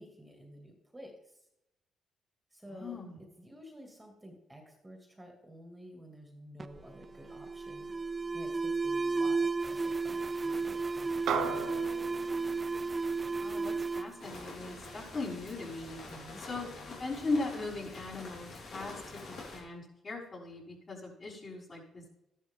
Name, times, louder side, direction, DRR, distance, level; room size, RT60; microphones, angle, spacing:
voice 1, 0.0-1.5 2.5-7.9 8.3-12.4 16.1-16.5, equal, 10° right, 2 dB, 2.4 m, -52 dB
voice 2, 2.7-3.2 9.2-9.3 13.4-16.0 16.4-22.1, left 3 dB, 40° left, -5 dB, 5.7 m, -39 dB
Alarm, 6.6-15.2, right 4 dB, 25° right, 0.6 m, -34 dB
sound 1, 11.3-15.9, right 6 dB, 80° right, 1.4 m, -39 dB
sound 2, 14.2-19.6, left 3 dB, 65° left, 4.5 m, -47 dB
13.0 x 11.5 x 3.7 m, 0.86 s
cardioid pair, 90°, 0 cm